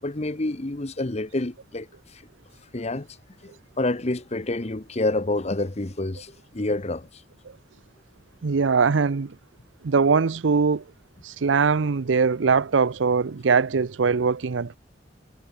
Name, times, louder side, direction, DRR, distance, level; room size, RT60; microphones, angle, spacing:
voice 1, 0.0-2.3 2.7-3.1 3.4-7.2, left 2 dB, 35° left, 1.1 m, -28 dB
voice 2, 8.4-9.4 9.8-10.8 11.2-14.8, right 5 dB, 85° right, 0.6 m, -21 dB
head